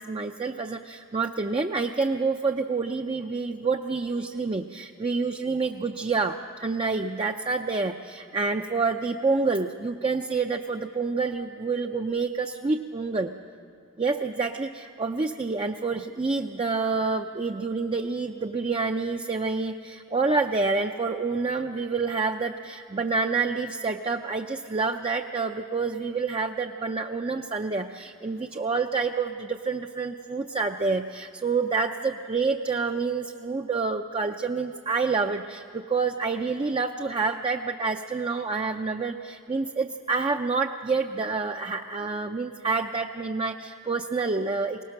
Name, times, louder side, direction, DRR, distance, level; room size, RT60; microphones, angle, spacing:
voice 1, 0.0-13.3 14.0-44.8, right 4 dB, 25° right, 4 dB, 0.4 m, -28 dB
22.5 x 19.0 x 6.5 m, 2.5 s
head